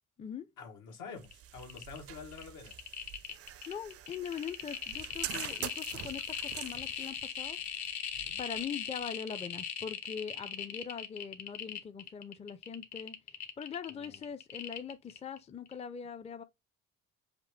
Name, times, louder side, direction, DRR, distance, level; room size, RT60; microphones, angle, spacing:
voice 1, 0.6-2.7 8.1-8.4 13.9-14.2, left 5 dB, 85° left, 1.6 m, -48 dB
sound 1, 1.2-1.3 1.6-2.0 2.3-15.4 15.7-15.8, left 8 dB, 65° left, 0.9 m, -39 dB
sound 2, 1.2-9.0, right 11 dB, 50° right, 0.4 m, -46 dB
voice 2, 3.7-7.6 8.4-13.2 13.6-16.4, left 7 dB, 20° left, 0.4 m, -42 dB
5.1 x 2.5 x 3.1 m
cardioid pair, 90°, 30 cm